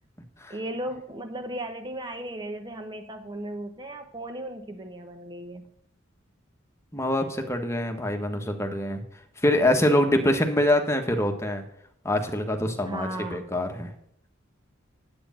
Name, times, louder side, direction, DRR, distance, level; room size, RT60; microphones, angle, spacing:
voice 1, 0.5-5.6 12.9-13.5, right 1 dB, 20° right, 6 dB, 0.9 m, -36 dB
voice 2, 6.9-9.0 9.4-11.6 12.0-13.9, left 1 dB, 15° left, 4 dB, 1.5 m, -24 dB
10.0 x 8.8 x 5.8 m, 0.70 s
head